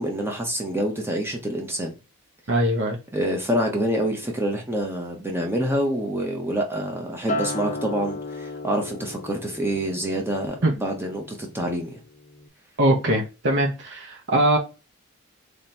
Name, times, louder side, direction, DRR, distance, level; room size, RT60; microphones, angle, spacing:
voice 1, 0.0-1.9 3.1-12.0, equal, 10° right, 0.7 m, -27 dB
voice 2, 2.5-3.0 10.6-10.7 12.8-14.6, right 1 dB, 55° right, 0.8 m, -21 dB
Acoustic guitar, 7.3-11.7 12.1-12.5, left 2 dB, 35° left, 0.6 m, -34 dB
3.3 x 2.9 x 4.2 m
head